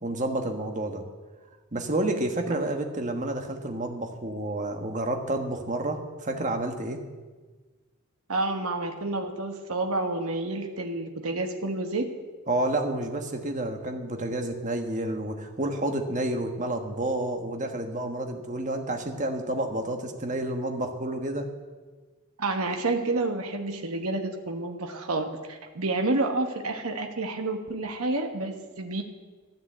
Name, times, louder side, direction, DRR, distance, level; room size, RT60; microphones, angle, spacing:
voice 1, 0.0-1.0 1.7-7.0 12.5-21.5, right 1 dB, 35° right, 5 dB, 1.4 m, -30 dB
voice 2, 8.3-12.0 22.4-29.0, right 2 dB, 75° right, 4 dB, 1.3 m, -29 dB
13.5 x 9.2 x 8.0 m, 1.3 s
head